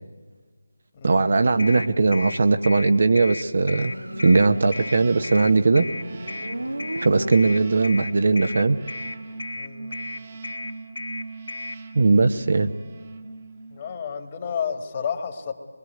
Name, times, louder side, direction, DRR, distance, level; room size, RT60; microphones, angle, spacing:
voice 1, 1.0-3.9 4.2-5.9 7.0-8.8 11.9-12.7, right 3 dB, 55° right, 8 dB, 1.0 m, -19 dB
sound 1, 1.6-11.8, left 2 dB, 65° left, 2.3 m, -34 dB
Motorcycle, 3.6-7.9, right 1 dB, 90° right, 1.5 m, -36 dB
sound 2, 4.0-14.0, right 3 dB, 35° right, 1.5 m, -40 dB
voice 2, 9.6-10.1 13.7-15.5, left 7 dB, 30° left, 6 dB, 2.0 m, -31 dB
24.0 x 22.0 x 9.4 m, 1.5 s
figure-of-eight pair, 160°, 0 cm